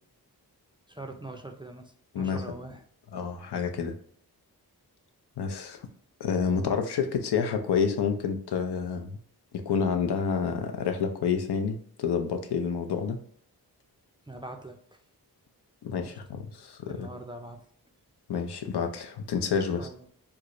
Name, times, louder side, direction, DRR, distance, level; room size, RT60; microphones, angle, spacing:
voice 1, 0.9-2.8 14.3-15.0 16.0-16.2 16.9-17.7 19.8-20.1, right 2 dB, 15° right, 4 dB, 0.4 m, -43 dB
voice 2, 2.1-2.6 3.1-3.9 5.4-5.8 6.2-9.2 9.5-13.2 15.8-17.1 18.3-19.9, left 6 dB, 80° left, 5 dB, 0.6 m, -29 dB
4.6 x 2.1 x 2.5 m, 0.63 s
wide cardioid pair, 95°, 39 cm